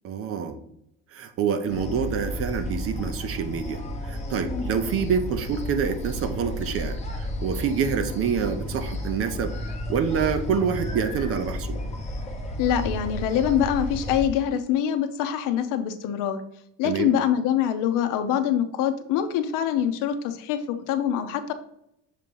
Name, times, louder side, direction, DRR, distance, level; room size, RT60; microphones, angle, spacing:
voice 1, 0.0-0.6 1.1-9.6 9.9-11.8 16.8-17.1, right 6 dB, 40° right, 9 dB, 0.6 m, -27 dB
sound 1, 1.7-14.3, left 1 dB, 20° left, 0.8 m, -32 dB
voice 2, 12.6-16.4 16.8-21.5, left 9 dB, 70° left, 9 dB, 0.8 m, -24 dB
6.7 x 3.0 x 5.3 m, 0.76 s
cardioid pair, 155°, 34 cm